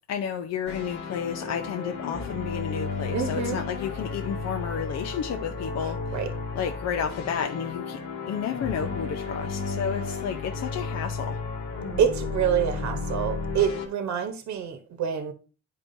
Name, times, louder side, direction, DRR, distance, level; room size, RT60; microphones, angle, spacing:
voice 1, 0.1-6.2 6.5-8.0 8.3-11.4, left 7 dB, 60° left, 0.6 m, -31 dB
sound 1, 0.7-13.9, left 4 dB, 80° left, 2.0 m, -33 dB
voice 2, 3.1-3.6 5.8-6.3 12.0-15.3, right 8 dB, 65° right, 1.0 m, -27 dB
10.0 x 4.7 x 2.6 m
cardioid pair, 90°, 30 cm